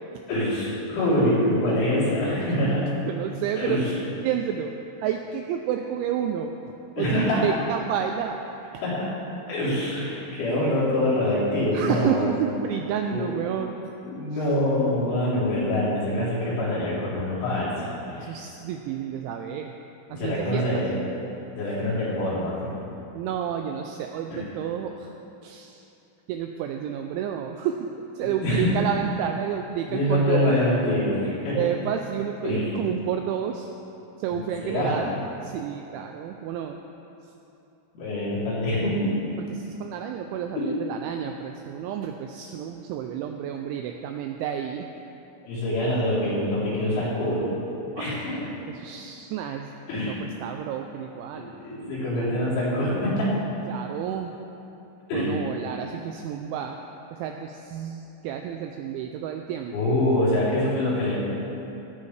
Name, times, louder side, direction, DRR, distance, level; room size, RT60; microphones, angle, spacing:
voice 1, 0.3-2.9 3.6-3.9 7.0-7.4 8.8-9.1 9.5-12.4 13.1-13.3 14.1-17.9 18.2-18.3 20.1-20.9 21.5-22.8 24.3-24.4 28.2-28.8 29.9-31.7 32.4-32.8 34.3-35.0 37.9-39.3 40.6-40.8 45.5-47.5 48.0-48.5 49.9-50.2 51.4-53.3 55.1-55.4 59.7-61.2, left 1 dB, 70° left, -9 dB, 6.0 m, -25 dB
voice 2, 3.1-3.9 4.2-4.7 5.0-6.5 7.0-8.4 11.7-13.8 18.2-19.7 20.1-21.0 23.1-25.1 25.4-25.8 26.3-30.6 31.5-33.7 34.2-35.1 35.4-36.8 39.4-44.9 48.0-48.5 48.8-49.7 50.0-51.5 53.7-54.3 55.1-56.8 57.1-60.0, right 9 dB, 85° right, 4 dB, 2.7 m, -30 dB
17.0 x 12.5 x 3.3 m, 2.9 s
omnidirectional pair, 5.9 m